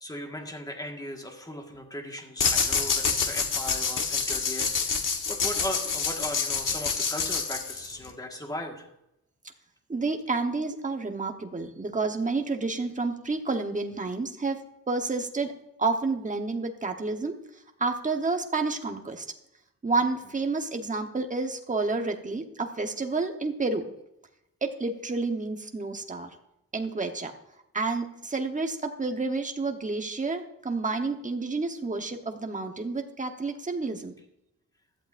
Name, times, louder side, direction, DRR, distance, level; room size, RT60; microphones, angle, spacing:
voice 1, 0.0-8.9, left 1 dB, 10° left, 2 dB, 1.7 m, -38 dB
sound 1, 2.4-8.1, left 5 dB, 65° left, 1.4 m, -27 dB
voice 2, 9.9-14.6 14.9-15.5 15.8-17.4 17.8-19.2 19.8-23.9 24.6-26.3 26.7-27.3 27.7-34.1, right 3 dB, 20° right, 4 dB, 1.1 m, -30 dB
16.0 x 11.5 x 2.6 m, 0.85 s
wide cardioid pair, 150°, 34 cm